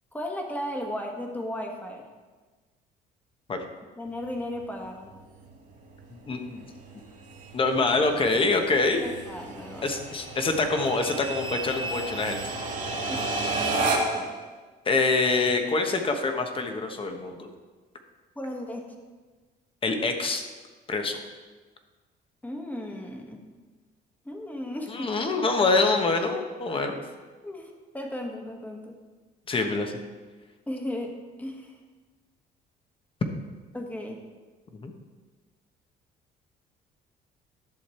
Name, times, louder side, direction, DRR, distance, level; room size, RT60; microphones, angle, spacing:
voice 1, 0.1-2.0 4.0-5.1 8.9-9.9 13.1-13.7 14.1-14.3 18.3-18.8 22.4-23.4 24.2-25.1 27.4-29.0 30.7-31.1 31.4-31.8 33.7-34.2, left 1 dB, 10° left, 2 dB, 1.5 m, -35 dB
sound 1, 4.1-14.3, right 2 dB, 50° right, 1.8 m, -33 dB
voice 2, 6.3-6.6 7.5-9.1 9.8-12.4 14.8-17.5 19.8-20.4 20.9-21.2 24.9-27.0 29.5-30.0 34.8-34.9, left 3 dB, 30° left, 5 dB, 1.1 m, -25 dB
11.0 x 6.5 x 4.4 m, 1.4 s
cardioid pair, 110°, 17 cm